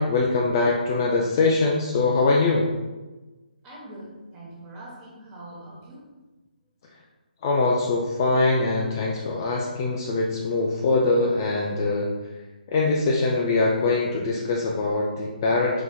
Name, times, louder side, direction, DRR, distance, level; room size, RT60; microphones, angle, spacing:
voice 1, 0.0-2.7 7.4-12.1 12.7-15.8, left 3 dB, 25° left, -2 dB, 0.3 m, -23 dB
voice 2, 3.6-6.0, right 1 dB, 15° right, -5 dB, 1.0 m, -42 dB
4.5 x 3.9 x 2.2 m, 1.2 s
hypercardioid pair, 165°, 5 cm